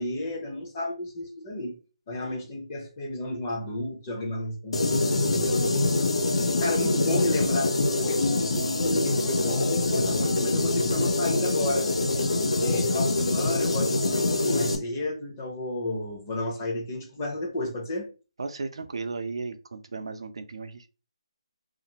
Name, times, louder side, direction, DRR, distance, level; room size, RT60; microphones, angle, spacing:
voice 1, 0.0-1.8 2.1-11.9 12.2-12.3 12.6-18.1, left 1 dB, 25° left, -1 dB, 0.7 m, -32 dB
sound 1, 4.7-14.8, left 2 dB, 70° left, 0.5 m, -25 dB
voice 2, 18.4-20.9, right 4 dB, 65° right, 7 dB, 0.4 m, -35 dB
2.5 x 2.5 x 2.8 m, 0.34 s
hypercardioid pair, 170°, 3 cm